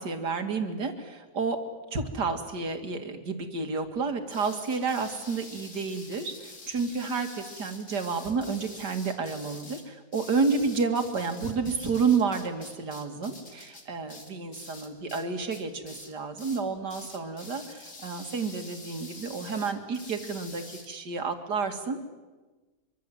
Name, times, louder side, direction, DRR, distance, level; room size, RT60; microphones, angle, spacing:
voice 1, 0.0-1.6 1.9-22.0, right 4 dB, 70° right, 5 dB, 2.8 m, -30 dB
sound 1, 4.3-15.2 15.5-16.1 16.4-16.6 16.9-20.9, left 2 dB, 45° left, 3.1 m, -46 dB
25.5 x 24.0 x 7.9 m, 1.2 s
omnidirectional pair, 1.9 m